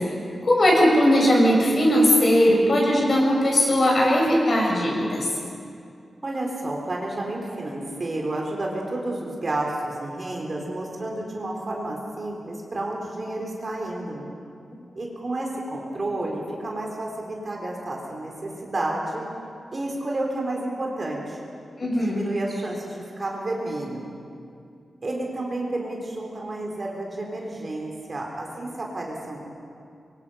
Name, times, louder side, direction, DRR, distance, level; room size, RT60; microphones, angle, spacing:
voice 1, 0.4-5.3 21.8-22.2, equal, 40° left, -3 dB, 7.0 m, -19 dB
voice 2, 6.2-14.3 14.9-19.3 19.7-21.4 22.0-24.1 25.0-29.5, right 2 dB, 35° right, -1 dB, 3.9 m, -31 dB
26.0 x 23.5 x 5.7 m, 2.4 s
wide cardioid pair, 140°, 0 cm